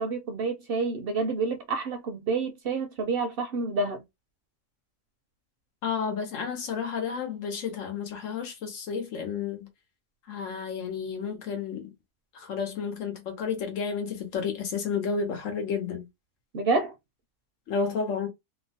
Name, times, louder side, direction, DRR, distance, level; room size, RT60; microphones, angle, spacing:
voice 1, 0.0-4.0 16.5-16.9, right 3 dB, 60° right, 0.6 m, -28 dB
voice 2, 5.8-9.7 10.3-11.9 12.3-16.1 17.7-18.3, left 6 dB, 80° left, 1.2 m, -31 dB
2.8 x 2.1 x 2.7 m
omnidirectional pair, 1.3 m